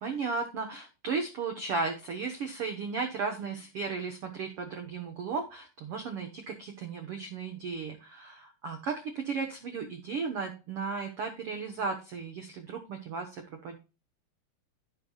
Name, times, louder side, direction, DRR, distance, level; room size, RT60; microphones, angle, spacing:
voice 1, 0.0-13.8, right 4 dB, 85° right, 4 dB, 1.2 m, -35 dB
16.0 x 5.3 x 2.3 m, 0.31 s
omnidirectional pair, 4.3 m